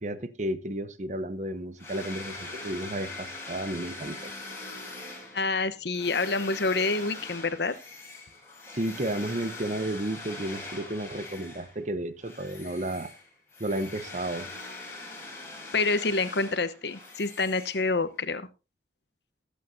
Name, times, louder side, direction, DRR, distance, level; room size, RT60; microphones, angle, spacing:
voice 1, 0.0-4.3 8.7-13.1 13.6-14.5, right 1 dB, 40° right, 0.8 m, -32 dB
sound 1, 1.8-11.8 12.2-18.2, left 3 dB, 15° left, 3.7 m, -42 dB
voice 2, 5.3-7.7 15.7-18.5, left 3 dB, 70° left, 0.9 m, -27 dB
20.0 x 8.4 x 2.7 m
head